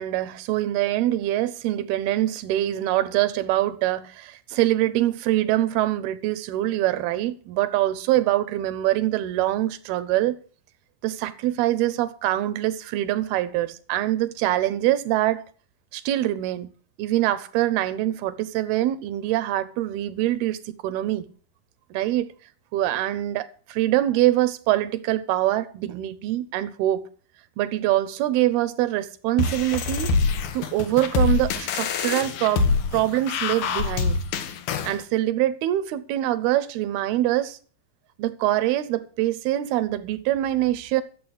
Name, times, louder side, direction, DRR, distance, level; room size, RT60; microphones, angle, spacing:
voice 1, 0.0-10.4 11.0-15.4 15.9-16.7 17.0-21.3 21.9-22.3 22.7-27.1 27.6-30.1 30.5-34.2 34.8-37.6 38.2-41.0, right 14 dB, 85° right, 2.9 m, -24 dB
sound 1, 29.4-35.0, left 4 dB, 75° left, 3.0 m, -25 dB
13.5 x 7.7 x 7.9 m
omnidirectional pair, 4.3 m